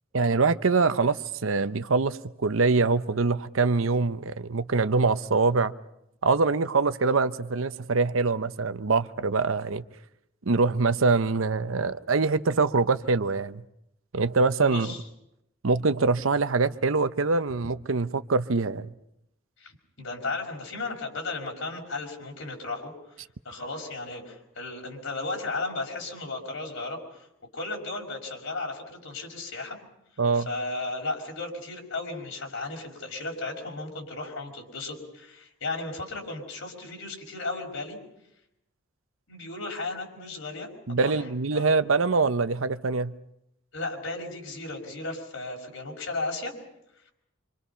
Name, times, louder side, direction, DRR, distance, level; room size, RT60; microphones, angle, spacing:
voice 1, 0.1-5.7 6.2-9.8 10.5-13.6 14.1-14.9 15.6-18.9 30.2-30.5 40.9-43.1, right 4 dB, 80° right, 0.8 m, -24 dB
voice 2, 14.6-15.0 19.6-22.9 23.4-27.3 27.5-29.8 30.3-38.0 39.3-40.7 41.0-41.3 41.5-41.7 43.7-46.5, left 3 dB, 75° left, 5.5 m, -35 dB
26.5 x 26.5 x 5.7 m
head